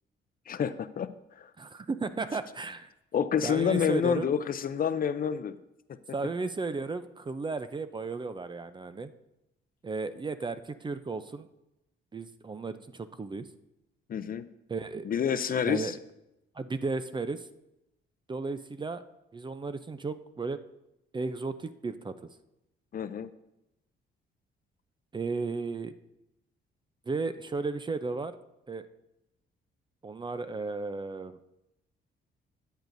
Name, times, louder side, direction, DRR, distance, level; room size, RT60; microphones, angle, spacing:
voice 1, 0.5-1.5 3.1-5.6 14.1-14.5 15.0-16.0 22.9-23.3, left 7 dB, 45° left, 12 dB, 0.6 m, -28 dB
voice 2, 1.6-2.9 3.4-4.3 6.1-9.1 9.8-11.5 12.1-13.5 14.7-15.1 15.6-15.9 16.5-17.5 18.3-19.0 19.3-20.6 21.1-22.1 25.1-25.9 27.1-28.3 28.7-28.8 30.0-31.4, right 4 dB, 25° right, 12 dB, 0.5 m, -34 dB
13.0 x 9.2 x 2.6 m, 0.89 s
cardioid pair, 90°, 20 cm